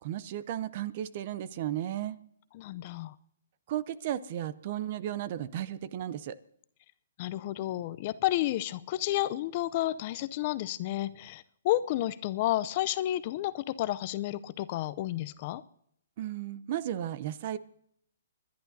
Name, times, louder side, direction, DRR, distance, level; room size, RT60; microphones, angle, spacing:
voice 1, 0.0-2.2 3.7-6.4 16.2-17.6, right 11 dB, 45° right, 17 dB, 0.6 m, -34 dB
voice 2, 2.5-3.1 7.2-15.6, left 14 dB, 40° left, 15 dB, 0.5 m, -31 dB
26.5 x 11.5 x 2.7 m, 0.69 s
hypercardioid pair, 150°, 0 cm